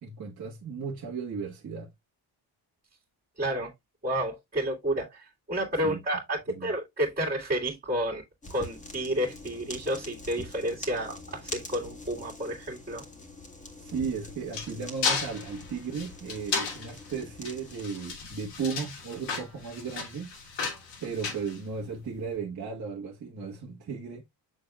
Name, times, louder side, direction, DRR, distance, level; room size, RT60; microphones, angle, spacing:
voice 1, 0.0-1.9 5.8-6.0 6.5-6.7 13.8-20.3 21.0-24.2, right 5 dB, 45° right, 1.5 m, -35 dB
voice 2, 3.4-3.7 4.0-8.2 8.5-13.0, right 1 dB, 20° right, 2.5 m, -30 dB
sound 1, 8.4-17.9, left 2 dB, 15° left, 2.0 m, -44 dB
sound 2, 13.9-22.2, left 5 dB, 80° left, 3.4 m, -34 dB
6.9 x 6.5 x 2.4 m
cardioid pair, 135°, 42 cm